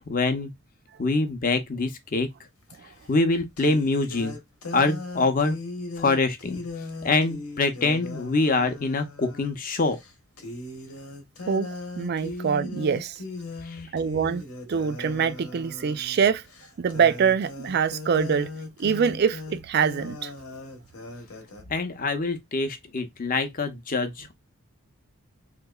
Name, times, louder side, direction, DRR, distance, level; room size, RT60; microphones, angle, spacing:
voice 1, 0.1-0.5 1.0-2.3 3.1-4.4 4.7-5.6 6.0-6.6 7.0-10.0 13.6-13.8 21.7-24.3, left 3 dB, 40° left, 0.6 m, -25 dB
sound 1, 2.7-2.8 3.6-9.6 9.9-10.1 10.4-21.6, left 2 dB, 80° left, 1.1 m, -38 dB
voice 2, 12.0-13.2 13.9-16.4 16.8-18.5 18.8-20.3, right 6 dB, 45° right, 0.3 m, -24 dB
3.6 x 2.9 x 2.2 m
head